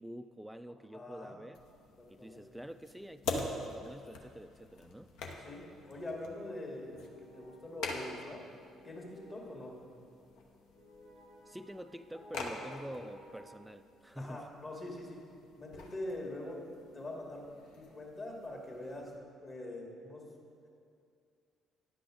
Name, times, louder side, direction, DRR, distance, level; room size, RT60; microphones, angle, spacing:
voice 1, 0.0-1.6 2.1-5.1 11.5-14.5, equal, 5° right, 11 dB, 0.3 m, -47 dB
voice 2, 0.9-1.4 2.0-2.5 5.4-8.4 8.8-9.8 14.2-15.2 15.6-16.6 16.9-19.1 19.4-20.3 20.6-20.7, left 1 dB, 35° left, -1 dB, 2.1 m, -44 dB
sound 1, 1.5-19.2, left 3 dB, 65° left, 0.9 m, -46 dB
sound 2, 5.6-13.5, equal, 85° left, 1.8 m, -58 dB
10.5 x 5.9 x 5.0 m, 2.4 s
figure-of-eight pair, 45°, 0 cm